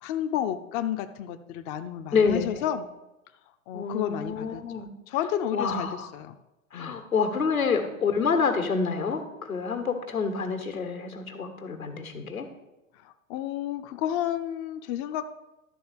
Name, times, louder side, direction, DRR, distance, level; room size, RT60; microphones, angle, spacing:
voice 1, 0.0-2.9 3.7-6.3 6.7-6.9 13.0-15.2, left 11 dB, 30° left, 8 dB, 0.5 m, -31 dB
voice 2, 2.1-2.6 3.7-4.9 5.5-6.1 6.7-12.5, left 5 dB, 85° left, 4 dB, 1.5 m, -27 dB
11.5 x 3.9 x 6.7 m, 0.98 s
figure-of-eight pair, 90°, 41 cm